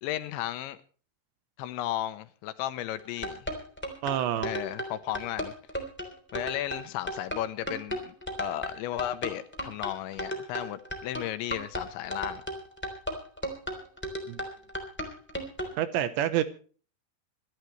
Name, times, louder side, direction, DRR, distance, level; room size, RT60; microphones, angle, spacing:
voice 1, 0.0-0.8 1.6-3.5 4.4-5.5 6.3-12.4, left 13 dB, 80° left, 3.0 m, -34 dB
sound 1, 3.0-15.7, equal, 5° left, 2.2 m, -35 dB
voice 2, 4.0-4.5 14.3-14.4 15.8-16.4, right 11 dB, 75° right, 3.0 m, -27 dB
26.5 x 12.0 x 3.2 m
omnidirectional pair, 5.6 m